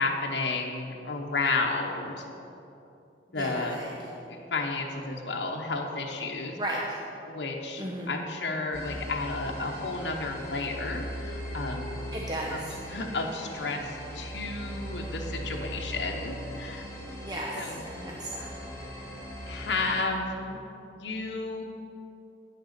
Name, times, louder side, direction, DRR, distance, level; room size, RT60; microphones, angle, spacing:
voice 1, 0.0-2.2 3.3-3.8 4.3-6.6 7.3-11.9 12.5-12.6 12.9-16.9 17.6-17.8 19.5-20.6 21.0-21.6, left 3 dB, 80° left, 0 dB, 0.9 m, -32 dB
voice 2, 3.3-3.9 6.6-7.0 7.8-8.2 12.1-12.7 17.2-17.5 17.8-18.5, right 1 dB, 25° right, -3 dB, 0.8 m, -34 dB
sound 1, 8.7-20.0, equal, 15° left, 2.2 m, -39 dB
9.2 x 6.7 x 6.6 m, 2.8 s
head